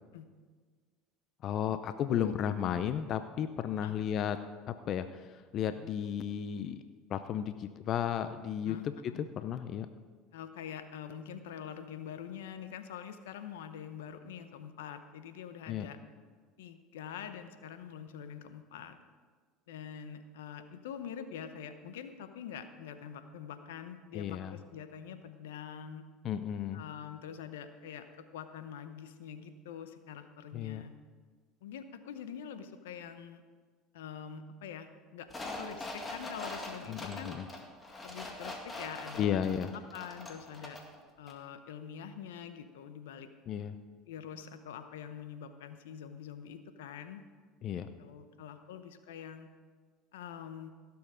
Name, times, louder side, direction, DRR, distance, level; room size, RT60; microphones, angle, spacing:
voice 1, 1.4-4.4 4.7-6.8 7.1-9.9 15.7-15.9 24.1-24.6 26.2-26.8 30.5-30.9 36.9-37.5 39.2-39.7 43.5-43.8 47.6-47.9, left 9 dB, 50° left, 10 dB, 0.6 m, -34 dB
voice 2, 8.6-9.2 10.3-16.0 16.6-19.0 19.7-26.0 26.7-30.9 31.6-33.4 33.9-35.3 35.6-37.4 38.0-40.8 41.2-43.3 44.1-47.2 48.0-49.5 50.1-50.7, left 8 dB, 85° left, 9 dB, 0.8 m, -45 dB
sound 1, 35.3-41.0 41.3-41.4, left 2 dB, 20° left, 2.1 m, -43 dB
16.5 x 7.1 x 5.0 m, 1.5 s
hypercardioid pair, 85°, 0 cm